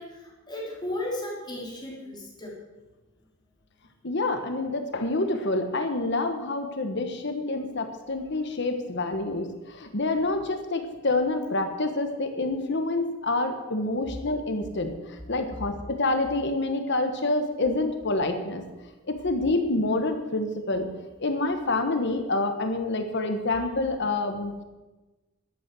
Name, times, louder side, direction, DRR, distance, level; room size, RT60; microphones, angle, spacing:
voice 1, 0.0-2.5 7.6-7.7, left 1 dB, 20° left, -3 dB, 3.5 m, -35 dB
voice 2, 4.0-18.6 19.1-20.9 21.2-24.5, left 2 dB, 60° left, 7 dB, 1.4 m, -27 dB
12.0 x 8.5 x 7.7 m, 1.1 s
head